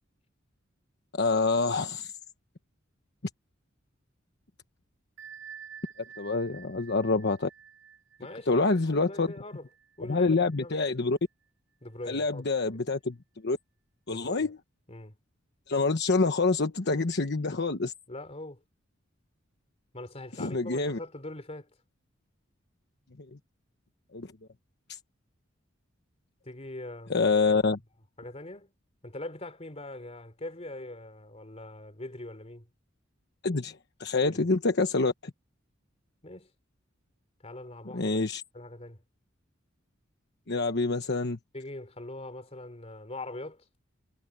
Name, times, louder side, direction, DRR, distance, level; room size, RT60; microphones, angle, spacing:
voice 1, 1.1-2.1 6.2-7.5 8.5-9.3 10.1-11.2 12.1-13.2 13.4-13.6 14.1-14.6 15.7-17.9 20.4-21.0 23.3-23.4 24.1-24.3 24.9-25.0 27.1-27.8 33.4-35.3 37.9-38.4 40.5-41.4, left 3 dB, 60° left, 1.1 m, -26 dB
Bell, 5.2-10.6, right 8 dB, 80° right, 7.2 m, -50 dB
voice 2, 8.2-9.7 10.0-10.8 11.8-12.4 12.7-12.8 14.1-14.5 14.9-15.1 18.1-18.6 19.9-21.7 26.4-27.3 27.6-27.7 28.2-28.7 29.0-32.7 34.2-34.5 36.2-36.5 37.4-38.2 38.5-39.0 41.5-43.6, left 2 dB, 35° left, 3.4 m, -42 dB
head